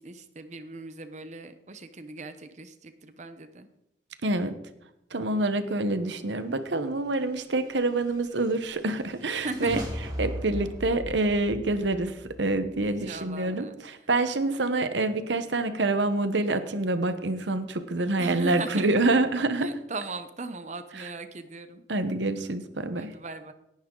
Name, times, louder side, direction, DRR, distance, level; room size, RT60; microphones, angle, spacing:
voice 1, 0.0-3.7 9.4-9.9 12.8-13.8 18.2-19.0 19.6-21.8 23.0-23.5, right 2 dB, 40° right, 10 dB, 0.9 m, -38 dB
voice 2, 4.2-4.6 5.1-9.8 10.2-19.7 21.0-21.1 21.9-23.1, right 2 dB, 80° right, 10 dB, 1.1 m, -27 dB
sound 1, 7.6-13.2, equal, 20° right, 3.2 m, -39 dB
18.0 x 11.0 x 3.9 m, 0.82 s
head